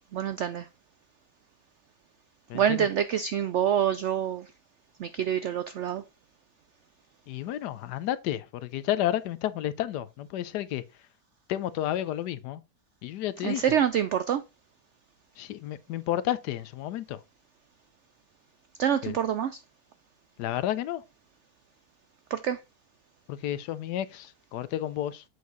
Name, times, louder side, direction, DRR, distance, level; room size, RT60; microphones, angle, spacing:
voice 1, 0.1-0.7 2.5-4.5 5.0-6.0 13.4-14.4 18.8-19.6 22.3-22.6, right 9 dB, 80° right, 0.6 m, -26 dB
voice 2, 2.5-2.9 7.3-10.8 11.5-12.6 13.0-13.7 15.4-17.2 19.0-19.1 20.4-21.0 23.3-25.2, left 12 dB, 80° left, 1.2 m, -31 dB
8.2 x 4.7 x 3.9 m
omnidirectional pair, 1.8 m